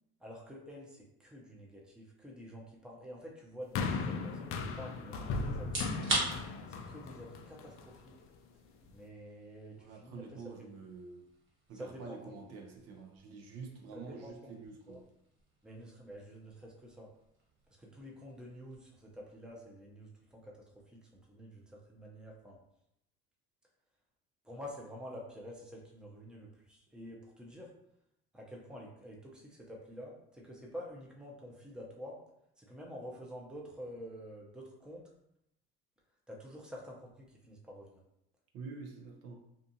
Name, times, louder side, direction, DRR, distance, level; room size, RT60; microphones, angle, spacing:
voice 1, 0.2-5.9 6.7-8.2 8.9-10.4 11.7-12.3 13.9-14.5 14.9-15.0 15.6-17.1 17.8-20.6 20.9-22.6 24.4-27.7 28.3-32.2 32.6-35.1 36.3-38.0, equal, 5° right, -2 dB, 0.6 m, -48 dB
Basketball Hit Wall, 3.7-8.1 8.9-9.0, left 4 dB, 45° left, 0.4 m, -37 dB
sound 1, 5.6-20.4, right 2 dB, 40° right, 1.1 m, -44 dB
voice 2, 9.8-11.3 11.7-15.1 38.5-39.5, right 4 dB, 60° right, 2 dB, 0.7 m, -47 dB
2.5 x 2.4 x 2.7 m, 0.79 s
supercardioid pair, 85°, 30 cm